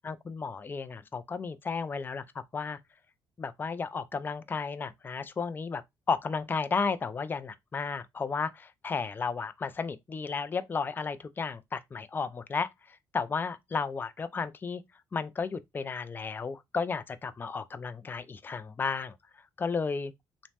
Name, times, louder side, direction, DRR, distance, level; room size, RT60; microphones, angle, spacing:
voice 1, 0.0-2.2 2.5-2.8 3.4-5.8 6.1-14.8 15.1-19.1 19.6-20.1, left 5 dB, 25° left, 0.3 m, -33 dB
3.1 x 2.0 x 2.8 m
cardioid pair, 75°, 8 cm